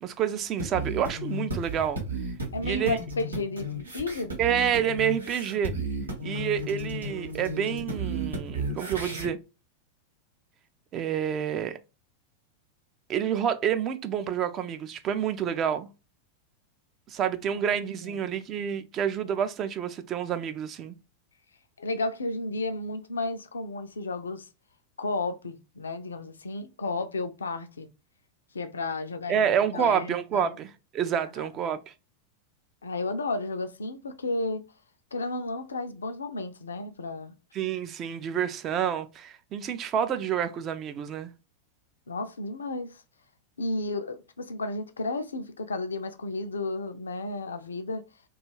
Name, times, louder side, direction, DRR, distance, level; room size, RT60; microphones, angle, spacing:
voice 1, 0.0-2.0 2.6-3.0 4.4-5.7 6.2-9.4 10.9-11.8 13.1-15.9 17.1-20.9 29.3-31.9 37.5-41.3, right 8 dB, 30° right, 0.3 m, -28 dB
sound 1, 0.6-9.3, right 1 dB, 80° right, 0.9 m, -34 dB
voice 2, 2.5-4.4 17.6-17.7 18.0-18.4 21.8-24.5 25.0-27.9 28.5-30.5 31.4-31.5 32.8-34.6 35.1-37.3 42.1-43.0 43.6-48.0, left 2 dB, 70° left, 0.3 m, -33 dB
2.4 x 2.3 x 3.0 m
figure-of-eight pair, 90°, 0 cm